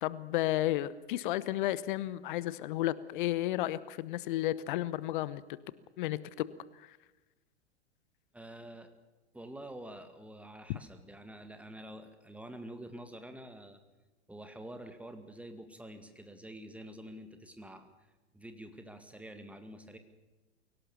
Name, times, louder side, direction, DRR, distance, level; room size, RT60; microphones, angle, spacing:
voice 1, 0.0-5.6 6.0-6.5 6.8-7.0, left 15 dB, 45° left, 18 dB, 1.0 m, -33 dB
voice 2, 8.3-8.9 9.3-13.8 14.3-17.9 18.3-20.0, right 1 dB, 5° right, 7 dB, 2.1 m, -47 dB
23.0 x 18.0 x 7.0 m, 1.1 s
figure-of-eight pair, 100°, 34 cm